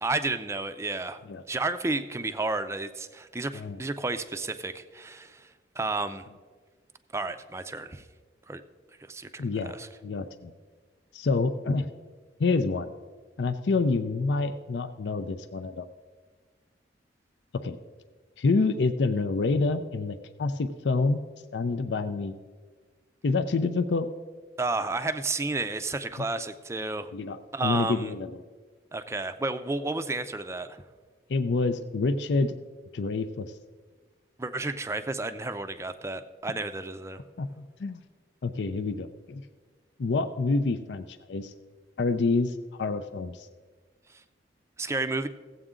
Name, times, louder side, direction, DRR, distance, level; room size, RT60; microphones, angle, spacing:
voice 1, 0.0-5.5 5.8-6.2 7.1-8.1 8.5-8.6 9.1-9.9 24.6-27.1 27.5-28.1 28.9-30.8 34.4-37.2 44.1-44.2 44.8-45.3, right 3 dB, 15° right, 10 dB, 0.4 m, -32 dB
voice 2, 9.4-9.7 10.0-10.5 11.1-11.9 12.4-12.9 13.4-15.9 17.5-17.8 18.4-21.2 21.5-22.3 23.2-24.1 27.1-28.3 31.3-32.5 32.9-33.5 37.4-38.0 38.4-39.4 40.0-41.5 42.0-43.5, left 3 dB, 70° left, 9 dB, 0.5 m, -27 dB
16.0 x 8.0 x 3.7 m, 1.5 s
head